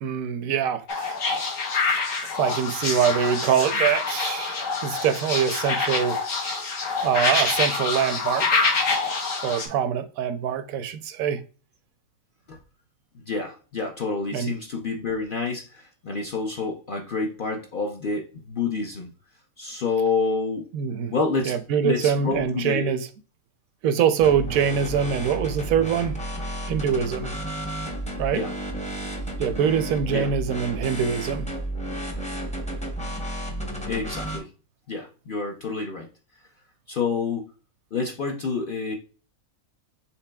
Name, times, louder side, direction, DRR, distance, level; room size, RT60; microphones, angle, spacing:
voice 1, 0.0-1.1 2.4-6.2 7.0-8.8 9.4-11.4 14.3-14.5 20.7-21.1 21.5-23.1 23.8-26.2 26.7-27.3 28.2-28.4 29.4-31.5, right 8 dB, 80° right, 1.0 m, -24 dB
sound 1, 0.9-9.7, left 4 dB, 70° left, 1.3 m, -26 dB
voice 2, 13.3-19.1 19.6-20.7 21.1-21.5 21.8-22.9 28.3-28.5 30.1-30.3 33.9-34.5 34.9-36.1 36.9-37.5 37.9-38.9, left 4 dB, 55° left, 0.6 m, -28 dB
sound 2, 24.2-34.4, right 1 dB, 10° left, 0.4 m, -32 dB
5.8 x 3.8 x 2.2 m
omnidirectional pair, 1.5 m